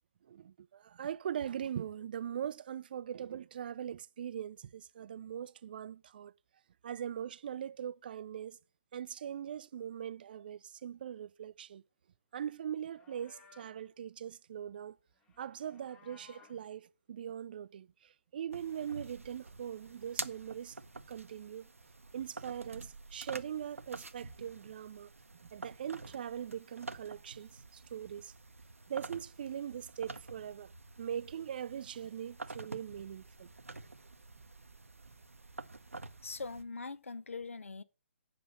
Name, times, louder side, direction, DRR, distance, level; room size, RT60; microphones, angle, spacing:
voice 1, 0.3-6.3 6.8-8.6 8.9-11.8 12.3-15.0 15.4-20.8 21.1-21.7 22.1-25.1 25.5-28.3 28.9-30.7 31.0-33.5, right 9 dB, 45° right, 0.3 m, -41 dB
Livestock farm animals working animals, 12.7-13.9 15.2-16.7, left 7 dB, 15° left, 0.8 m, -61 dB
sound 1, 18.5-36.6, right 3 dB, 90° right, 0.7 m, -48 dB
voice 2, 36.2-37.8, left 4 dB, 75° left, 0.7 m, -42 dB
7.5 x 5.4 x 5.8 m
figure-of-eight pair, 140°, 7 cm